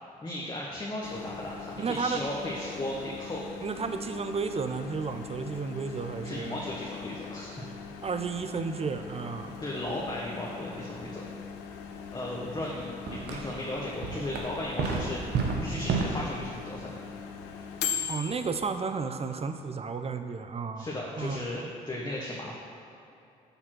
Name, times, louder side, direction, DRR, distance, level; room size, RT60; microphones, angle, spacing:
voice 1, 0.2-3.5 6.2-7.6 9.6-11.2 12.1-15.2 15.6-16.9 20.8-22.6, left 1 dB, 25° left, -4 dB, 1.2 m, -36 dB
Microwave oven, 1.0-18.8, left 7 dB, 80° left, 0.5 m, -41 dB
voice 2, 1.8-2.2 3.6-6.6 8.0-9.6 18.0-20.9 21.2-21.7, right 5 dB, 35° right, 8 dB, 0.6 m, -33 dB
sound 1, 12.6-12.8 13.1-13.6 14.0-16.0, right 5 dB, 65° right, 0.9 m, -30 dB
6.7 x 4.3 x 5.9 m, 2.7 s
hypercardioid pair, 50°, 18 cm